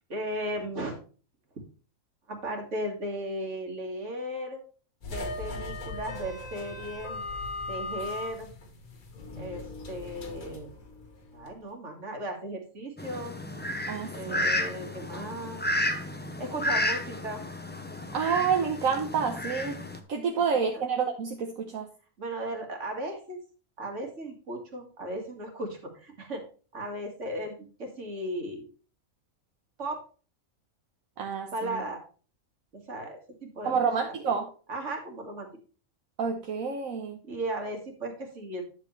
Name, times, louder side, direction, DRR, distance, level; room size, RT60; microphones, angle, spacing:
voice 1, 0.1-1.0 2.3-4.6 5.1-7.2 7.7-8.5 9.4-10.7 11.3-13.4 14.1-15.6 16.4-17.4 20.3-20.4 20.7-20.8 22.2-23.4 23.8-26.5 26.7-28.7 29.8-30.0 31.5-32.0 32.7-33.9 34.7-35.5 37.2-38.6, right 1 dB, 55° right, 3 dB, 2.4 m, -36 dB
sound 1, 5.0-11.5, left 2 dB, 80° left, 2.0 m, -38 dB
Fowl, 13.0-20.0, left 1 dB, 10° left, 0.6 m, -32 dB
voice 2, 13.9-14.5 18.1-19.8 20.1-21.9 31.2-31.8 33.6-34.5 36.2-37.2, right 6 dB, 75° right, 2 dB, 1.4 m, -28 dB
10.0 x 7.5 x 3.2 m, 0.38 s
omnidirectional pair, 1.5 m